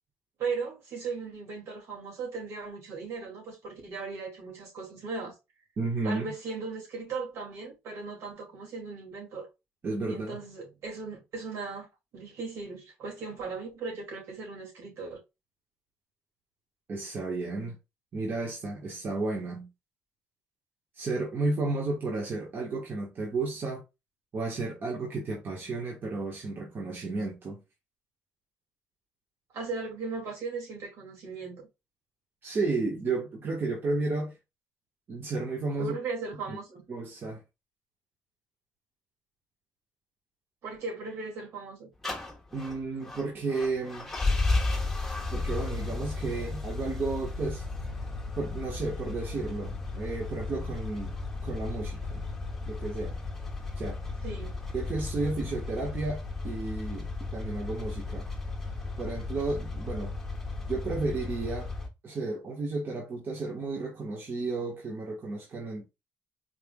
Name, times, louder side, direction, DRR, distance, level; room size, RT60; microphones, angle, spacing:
voice 1, 0.4-5.3 6.0-9.5 10.1-11.9 12.1-15.2 29.5-31.7 35.8-36.8 40.6-41.9 54.2-54.6, right 4 dB, 70° right, 2.5 m, -37 dB
voice 2, 5.8-6.2 9.8-10.4 16.9-17.8 18.1-19.7 20.9-23.8 24.3-27.6 32.4-34.3 35.1-36.0 36.5-36.6 36.9-37.4 42.5-44.1 45.3-47.6 48.4-51.2 51.4-52.2 52.7-53.2 53.8-54.0 54.7-58.3 59.0-60.1 60.7-61.7 62.0-65.9, right 3 dB, 50° right, 1.4 m, -32 dB
sound 1, 42.0-61.9, left 3 dB, 5° left, 1.4 m, -34 dB
4.6 x 3.5 x 2.3 m
supercardioid pair, 70°, 5 cm